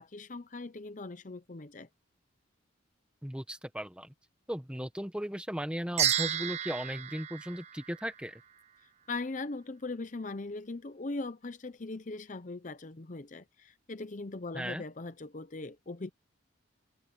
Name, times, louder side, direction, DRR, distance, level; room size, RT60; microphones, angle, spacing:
voice 1, 0.0-1.9 9.1-16.1, left 3 dB, 40° left, 0.7 m, -40 dB
voice 2, 3.2-4.1 4.5-8.4 14.5-14.8, equal, 5° right, 1.4 m, -37 dB
sound 1, 6.0-8.4, right 10 dB, 35° right, 0.6 m, -32 dB
open air
head